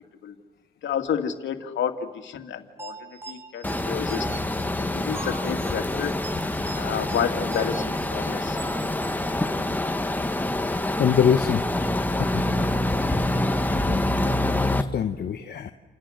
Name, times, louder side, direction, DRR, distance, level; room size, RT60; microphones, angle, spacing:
voice 1, 0.8-4.3 4.8-6.1 6.8-8.6, left 8 dB, 70° left, 5 dB, 2.4 m, -30 dB
sound 1, 2.8-9.6, right 3 dB, 10° right, 1.9 m, -41 dB
sound 2, 3.6-14.8, left 1 dB, 10° left, 1.4 m, -26 dB
voice 2, 11.0-11.6 12.2-12.4 13.9-14.3 14.9-15.7, left 8 dB, 55° left, 6 dB, 1.0 m, -24 dB
29.5 x 28.0 x 6.5 m, 1.4 s
cardioid pair, 90°, 20 cm